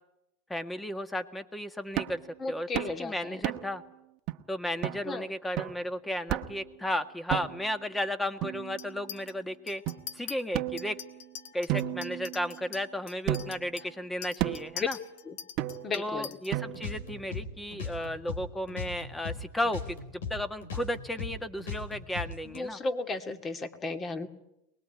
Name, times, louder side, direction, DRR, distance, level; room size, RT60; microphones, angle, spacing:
voice 1, 0.5-2.2 2.5-2.7 3.0-3.8 4.5-9.8 10.1-11.0 11.5-15.0 15.9-22.8, left 1 dB, 10° left, 10 dB, 1.7 m, -34 dB
sound 1, 2.0-2.2 2.7-3.0 3.4-3.8 4.3-4.4 4.8-5.0 5.6-5.8 6.3-6.7 7.3-7.7 8.4-9.1 9.9-10.0 10.5-11.2 11.7-12.7 13.3-13.7 14.4-14.8 15.6-16.0 16.5-17.0, right 14 dB, 50° right, 1.2 m, -33 dB
voice 2, 2.4-3.4 5.0-5.3 14.4-14.9 15.3-15.4 15.8-16.4 22.4-24.3, left 3 dB, 25° left, 7 dB, 2.4 m, -34 dB
Chink clink, 8.8-9.3 9.7-10.4 10.8-16.5, left 9 dB, 65° left, 1.6 m, -44 dB
sound 2, 16.7-19.4 19.6-22.6, left 5 dB, 90° left, 4.3 m, -38 dB
24.0 x 20.0 x 9.4 m, 0.87 s
supercardioid pair, 115°, 0 cm